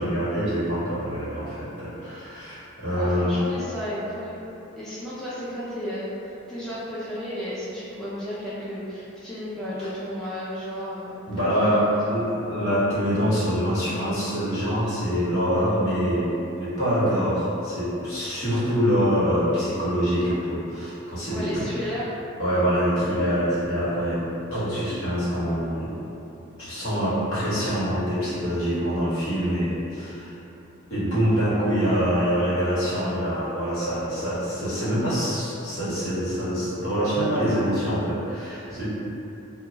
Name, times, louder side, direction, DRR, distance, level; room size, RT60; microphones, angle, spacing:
voice 1, 0.0-3.4 9.8-9.9 11.3-21.7 22.4-25.9 26.6-30.3 30.9-38.8, equal, 75° left, -12 dB, 1.2 m, -25 dB
voice 2, 2.9-4.4 4.8-11.3 11.6-12.1 21.3-22.1, equal, ahead, -11 dB, 0.4 m, -33 dB
2.2 x 2.1 x 3.9 m, 2.9 s
head